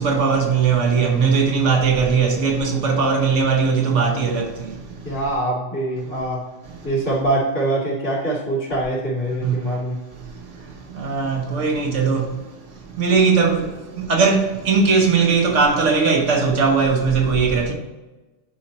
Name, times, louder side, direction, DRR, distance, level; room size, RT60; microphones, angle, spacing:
voice 1, 0.0-4.5 9.4-9.5 11.0-12.2 13.0-13.7 14.0-17.7, right 5 dB, 90° right, 1.5 m, -18 dB
voice 2, 5.0-6.4 6.8-10.0, right 1 dB, 80° left, 2.8 m, -23 dB
10.5 x 4.2 x 3.0 m
omnidirectional pair, 1.2 m